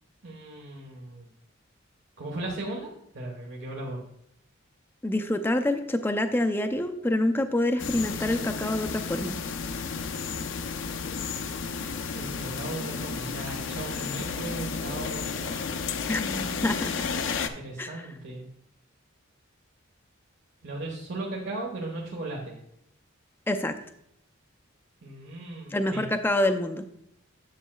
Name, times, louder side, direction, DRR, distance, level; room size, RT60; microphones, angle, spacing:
voice 1, 0.2-1.3 2.2-2.9 3.1-4.0 12.1-15.7 17.4-18.4 20.6-22.5 25.0-26.0, right 2 dB, 60° right, -2 dB, 1.3 m, -37 dB
voice 2, 5.0-9.4 16.1-16.9 17.8-18.1 23.5-23.7 25.7-26.8, left 1 dB, 10° left, 6 dB, 0.5 m, -26 dB
sound 1, 7.8-17.5, left 5 dB, 65° left, 0.5 m, -32 dB
10.0 x 7.5 x 2.3 m, 0.75 s
head